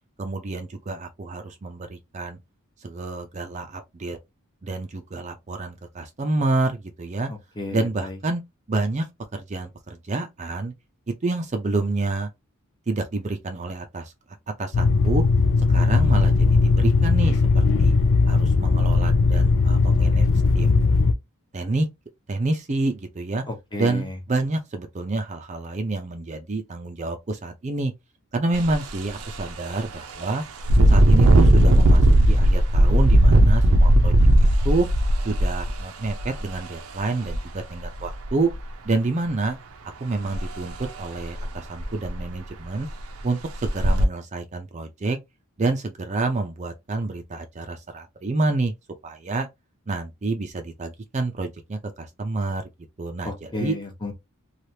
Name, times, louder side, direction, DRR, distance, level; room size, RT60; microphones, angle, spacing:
voice 1, 0.2-2.4 2.8-4.2 4.6-7.3 7.7-8.4 8.7-9.1 9.3-10.7 11.1-12.3 12.9-14.1 14.6-15.2 15.7-17.9 18.3-20.3 20.5-20.8 21.5-21.9 22.3-23.4 23.8-27.9 28.3-30.4 30.9-34.1 34.6-34.9 35.2-38.5 38.8-39.6 40.0-42.9 43.2-45.2 45.6-48.7 49.0-49.5 49.9-52.6 53.0-53.8, right 2 dB, 35° right, 0.5 m, -28 dB
voice 2, 7.6-8.2 23.5-24.2 53.2-54.1, left 2 dB, 20° left, 0.8 m, -32 dB
sound 1, 14.7-21.1, left 3 dB, 60° left, 0.4 m, -18 dB
Engine, 28.5-28.7 29.2-29.4 30.6-36.4 37.3-37.4 37.8-38.5 40.3-40.5 40.8-40.9 41.4-41.5 41.8-42.3 42.9-43.0 43.6-44.0, right 1 dB, 80° right, 0.7 m, -16 dB
3.2 x 2.4 x 2.7 m
head